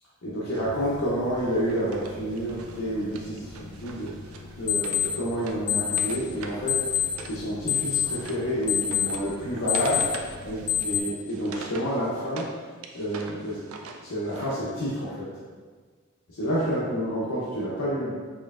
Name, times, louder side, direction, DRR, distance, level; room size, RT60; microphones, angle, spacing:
voice 1, 0.2-4.1 4.6-6.8 7.3-10.0 10.4-12.5 12.9-13.6 14.0-15.3 16.3-18.1, equal, 85° left, -8 dB, 0.7 m, -29 dB
sound 1, 0.6-11.0, left 9 dB, 20° left, 0.4 m, -30 dB
Wood, 1.4-7.4 7.7-12.5 12.8-14.6, right 4 dB, 90° right, 0.4 m, -43 dB
4.3 x 3.1 x 2.4 m, 1.5 s
head